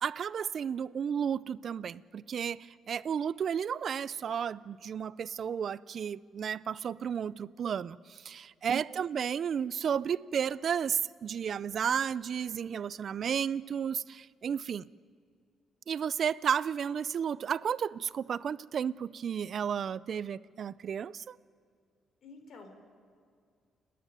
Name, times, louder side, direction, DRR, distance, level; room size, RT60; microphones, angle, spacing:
voice 1, 0.0-14.9 15.9-21.4, right 8 dB, 55° right, 0.5 m, -33 dB
voice 2, 8.7-9.1 22.2-22.7, left 3 dB, 65° left, 4.0 m, -51 dB
29.5 x 10.0 x 9.2 m
cardioid pair, 90°, 0 cm